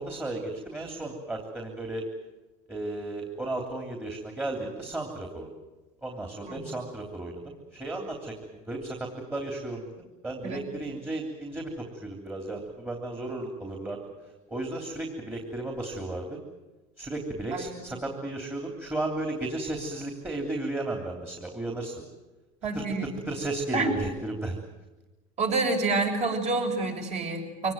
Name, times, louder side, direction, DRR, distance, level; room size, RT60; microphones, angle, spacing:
voice 1, 0.0-2.1 2.7-5.5 6.0-14.1 14.5-16.4 17.0-22.0 22.7-24.6, right 2 dB, 10° right, 2 dB, 3.2 m, -34 dB
voice 2, 17.5-17.9 22.6-23.1 23.7-23.9 25.4-27.7, right 3 dB, 35° right, 2 dB, 6.7 m, -28 dB
24.5 x 19.0 x 9.2 m, 1.1 s
supercardioid pair, 125°, 19 cm